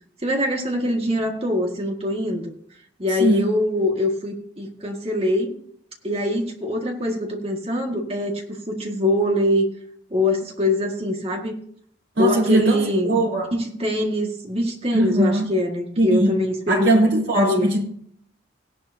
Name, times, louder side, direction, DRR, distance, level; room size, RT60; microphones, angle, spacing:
voice 1, 0.2-2.5 3.0-5.5 6.0-9.7 10.1-11.5 12.2-13.2 13.5-17.0 17.3-17.7, left 1 dB, 30° right, 1 dB, 1.9 m, -23 dB
voice 2, 12.2-12.8 13.1-13.5 14.9-15.5 16.0-16.4 16.7-17.9, right 1 dB, 85° right, -3 dB, 3.6 m, -19 dB
16.5 x 11.0 x 2.8 m, 0.65 s
head